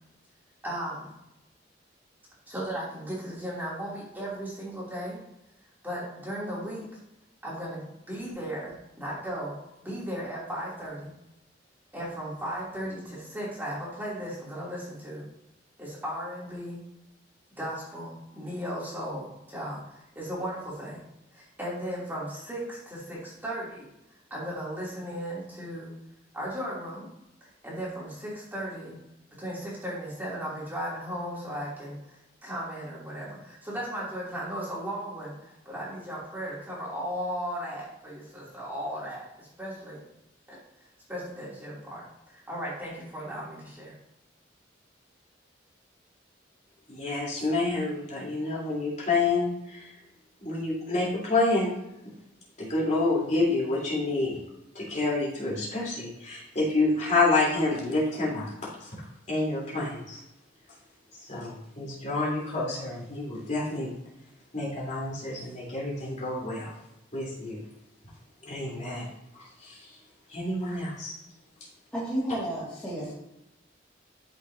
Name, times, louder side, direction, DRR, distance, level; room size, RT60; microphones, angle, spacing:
voice 1, 0.6-1.1 2.5-5.2 5.8-6.9 7.4-9.6 9.8-11.1 11.9-15.2 15.8-16.8 17.6-21.0 21.3-23.9 24.3-25.9 26.3-27.1 27.6-29.0 29.4-40.0 40.5-40.6 41.1-43.9, equal, 10° right, -7 dB, 3.0 m, -36 dB
voice 2, 46.9-49.8 50.4-51.8 52.6-54.4 54.8-58.5 59.3-60.2 61.3-63.9 64.5-66.7 67.1-67.6 68.4-69.0 69.6-69.8 70.3-71.1, left 2 dB, 40° left, -6 dB, 3.6 m, -28 dB
voice 3, 71.9-73.1, right 1 dB, 5° left, -11 dB, 2.3 m, -31 dB
13.5 x 6.1 x 2.8 m, 0.86 s
head